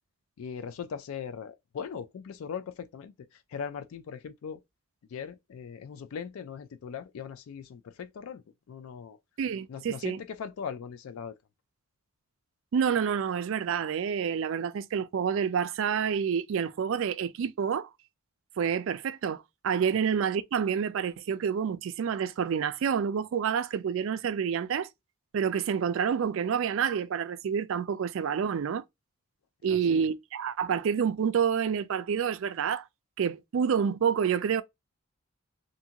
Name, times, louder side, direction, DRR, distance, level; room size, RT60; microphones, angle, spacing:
voice 1, 0.4-3.1 3.5-4.6 5.1-9.2 9.7-11.3 29.7-30.0, left 7 dB, 80° left, 0.3 m, -39 dB
voice 2, 9.4-10.2 12.7-17.9 18.6-24.9 25.3-28.8 29.6-32.9 33.2-34.6, right 7 dB, 60° right, 0.3 m, -28 dB
2.6 x 2.4 x 2.8 m
head